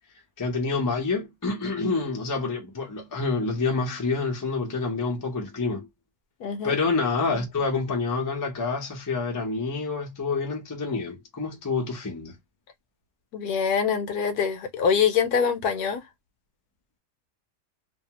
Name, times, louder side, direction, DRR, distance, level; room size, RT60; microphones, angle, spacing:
voice 1, 0.4-5.9 6.6-12.4, left 4 dB, 25° left, 0.4 m, -27 dB
voice 2, 6.4-6.8 13.3-16.0, left 6 dB, 70° left, 1.1 m, -24 dB
2.7 x 2.3 x 2.8 m
omnidirectional pair, 1.8 m